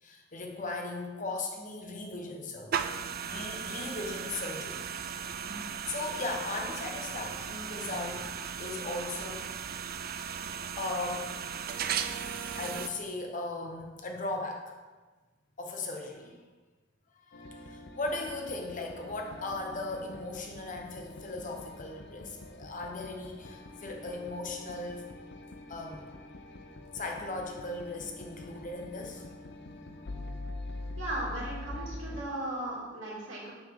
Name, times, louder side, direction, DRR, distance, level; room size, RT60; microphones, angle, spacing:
voice 1, 0.0-2.9 3.2-4.8 5.9-8.3 8.6-9.5 10.8-11.4 12.6-14.7 15.6-16.4 17.3-25.1 25.7-26.1 26.9-29.3, left 2 dB, 40° left, 2 dB, 1.0 m, -37 dB
sound 1, 2.7-12.9, right 7 dB, 50° right, 0.4 m, -36 dB
sound 2, 17.3-32.2, left 2 dB, 60° left, 0.6 m, -45 dB
voice 2, 31.0-33.5, right 1 dB, 75° right, -5 dB, 2.4 m, -37 dB
6.9 x 6.2 x 3.8 m, 1.3 s
head